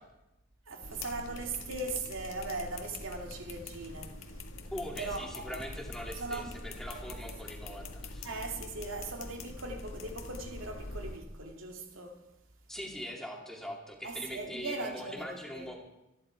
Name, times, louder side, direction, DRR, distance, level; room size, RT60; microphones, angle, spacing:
voice 1, 0.7-4.2 5.0-5.6 6.2-6.5 8.2-12.2 14.0-15.7, right 3 dB, 90° right, 2.3 m, -39 dB
Pen shaking, 0.8-11.2, left 2 dB, 90° left, 1.8 m, -44 dB
sound 1, 3.9-9.2, right 1 dB, 25° right, 1.4 m, -57 dB
voice 2, 4.7-8.3 12.7-15.8, equal, ahead, 2.6 m, -42 dB
26.0 x 11.0 x 4.6 m
head